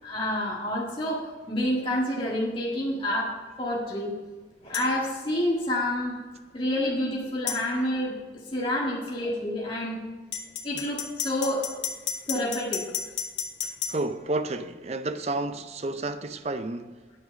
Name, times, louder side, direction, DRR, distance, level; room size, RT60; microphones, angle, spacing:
voice 1, 0.0-3.3 3.6-4.1 4.6-6.2 6.5-8.1 8.5-10.0 10.6-11.8 12.3-12.8, left 1 dB, 30° left, 1.7 m, -28 dB
sound 1, 4.7-4.9 7.5-7.6 10.3-14.0, left 7 dB, 80° left, 1.1 m, -32 dB
voice 2, 13.9-17.2, right 2 dB, 35° right, 0.5 m, -31 dB
9.6 x 6.0 x 6.4 m
head